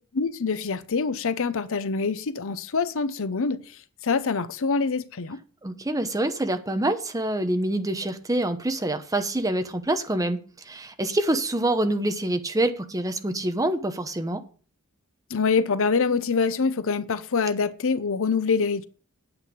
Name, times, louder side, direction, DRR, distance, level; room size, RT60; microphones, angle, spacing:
voice 1, 0.1-3.6 4.0-5.4 15.3-18.8, left 5 dB, 65° left, 0.7 m, -25 dB
voice 2, 5.6-14.4, right 1 dB, 15° right, 0.9 m, -26 dB
9.0 x 8.9 x 5.3 m
head